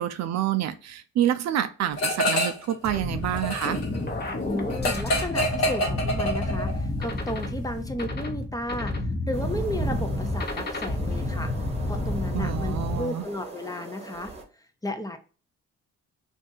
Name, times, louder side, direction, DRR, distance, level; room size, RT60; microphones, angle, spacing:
voice 1, 0.0-3.8 12.3-13.2, right 11 dB, 65° right, 11 dB, 0.4 m, -27 dB
sound 1, 2.0-2.7 3.0-6.8, equal, 60° left, 1.1 m, -27 dB
sound 2, 2.8-13.0, left 2 dB, 35° left, 0.8 m, -30 dB
voice 2, 4.4-11.5 11.9-14.3 14.8-15.2, left 1 dB, 10° left, 6 dB, 0.5 m, -33 dB
sound 3, 9.3-14.4, right 3 dB, 20° right, 0.9 m, -38 dB
2.6 x 2.5 x 3.8 m, 0.37 s
cardioid pair, 90°, 30 cm